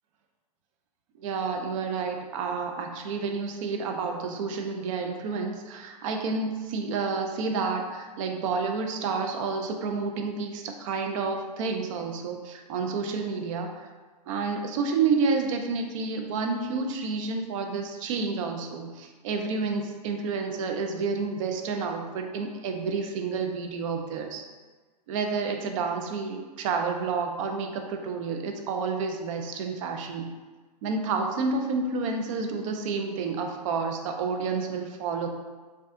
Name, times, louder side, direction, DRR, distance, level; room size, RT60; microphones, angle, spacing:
voice 1, 1.2-13.9 14.3-24.4 25.1-30.3 30.8-35.3, right 4 dB, 50° right, 4 dB, 0.6 m, -30 dB
5.2 x 2.3 x 2.6 m, 1.3 s
hypercardioid pair, 110°, 21 cm